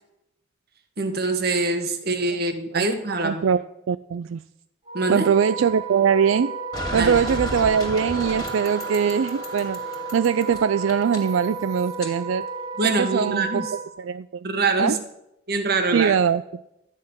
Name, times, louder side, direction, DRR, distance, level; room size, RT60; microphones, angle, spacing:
voice 1, 1.0-3.4 4.9-5.3 7.0-7.1 12.8-13.7 14.4-15.0 15.5-16.1, right 3 dB, 50° right, 7 dB, 1.4 m, -24 dB
voice 2, 3.2-4.4 5.1-6.6 6.9-9.8 10.1-12.5 12.8-13.6 14.0-14.5 14.8-15.0 15.9-16.4, right 7 dB, 75° right, 13 dB, 0.4 m, -22 dB
Wind instrument woodwind instrument, 4.8-13.9, right 4 dB, 25° right, 1.7 m, -33 dB
sound 1, 6.7-12.1, left 1 dB, 20° left, 2.4 m, -34 dB
12.5 x 6.5 x 9.6 m, 0.86 s
head